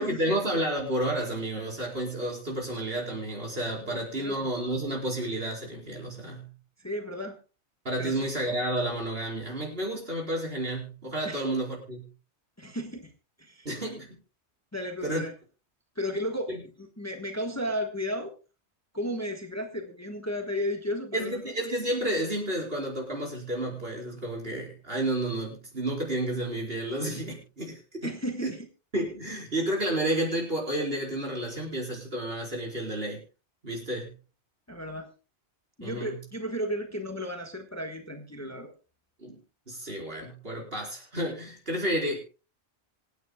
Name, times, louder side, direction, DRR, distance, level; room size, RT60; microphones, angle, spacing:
voice 1, 0.0-6.5 7.8-12.0 13.6-14.2 15.0-15.2 21.1-28.1 28.9-33.2 33.6-34.1 35.8-36.2 39.2-39.4 39.7-42.2, right 1 dB, 55° right, -2 dB, 5.0 m, -31 dB
voice 2, 3.8-4.5 6.8-7.4 8.0-8.3 11.2-11.4 12.6-13.1 13.4-13.7 14.7-15.3 15.9-18.3 18.9-21.5 28.0-28.6 34.7-35.1 35.8-38.7, equal, 15° left, 4 dB, 1.3 m, -34 dB
26.5 x 9.3 x 2.3 m, 0.32 s
omnidirectional pair, 1.2 m